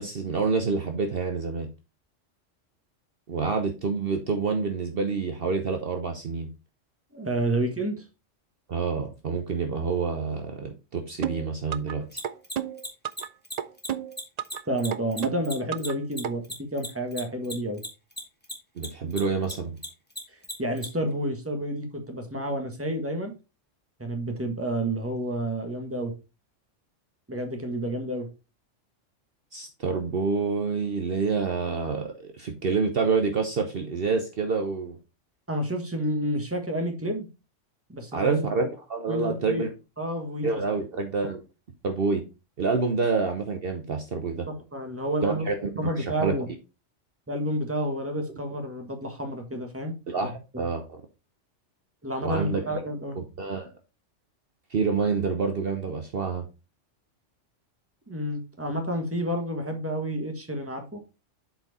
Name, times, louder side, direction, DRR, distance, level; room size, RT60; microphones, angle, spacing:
voice 1, 0.0-1.7 3.3-6.5 8.7-12.2 18.8-19.7 29.5-35.0 38.1-39.7 40.4-41.4 41.8-42.2 42.6-44.5 45.2-46.4 50.1-50.3 50.6-51.0 52.2-52.6 53.2-53.7 54.7-56.5, right 4 dB, 55° right, 5 dB, 1.0 m, -27 dB
voice 2, 7.1-8.0 14.6-17.8 20.3-23.3 24.0-26.1 27.3-28.3 35.5-37.3 37.9-38.4 39.1-39.7 40.0-40.6 44.5-45.4 45.8-46.5 47.3-49.9 50.2-50.6 52.0-53.2 58.1-61.0, right 1 dB, 10° right, 4 dB, 1.4 m, -30 dB
sound 1, 11.2-12.0 12.2-13.3 13.6-14.6 14.9-16.0 16.2-16.3, right 9 dB, 85° right, 0.3 m, -31 dB
Mechanisms, 12.1-18.9 19.1-20.9, left 1 dB, 10° left, 1.7 m, -35 dB
7.9 x 4.5 x 4.1 m, 0.29 s
omnidirectional pair, 1.3 m